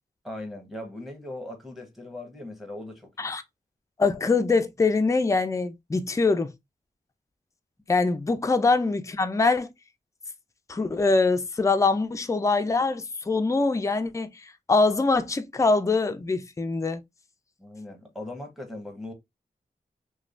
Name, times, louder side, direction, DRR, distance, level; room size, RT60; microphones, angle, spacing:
voice 1, 0.2-3.3 17.6-19.1, left 1 dB, ahead, 1.0 m, -39 dB
voice 2, 4.0-6.5 7.9-9.7 10.7-14.3 14.7-17.0, left 3 dB, 20° left, 0.4 m, -23 dB
3.1 x 2.2 x 2.4 m
wide cardioid pair, 70°, 17 cm